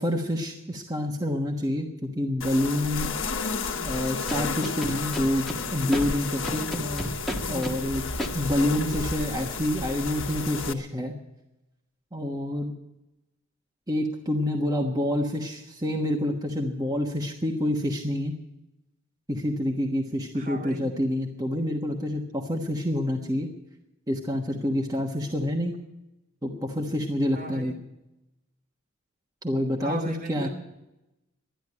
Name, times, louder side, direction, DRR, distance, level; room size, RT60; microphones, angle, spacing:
voice 1, 0.0-3.1 3.8-7.1 7.5-11.2 12.1-12.7 13.9-18.3 19.3-23.5 24.1-25.8 26.4-27.7 29.4-30.5, left 1 dB, 20° right, 1 dB, 1.3 m, -27 dB
sound 1, 2.4-10.7, left 4 dB, 70° left, 1.3 m, -32 dB
Scratching (performance technique), 4.3-5.6 5.9-6.0 6.4-7.7 8.2-8.3, equal, ahead, 1.6 m, -31 dB
voice 2, 20.3-20.9 27.3-27.7 29.8-30.5, right 2 dB, 45° right, 1 dB, 2.3 m, -37 dB
13.0 x 10.5 x 9.6 m, 0.94 s
head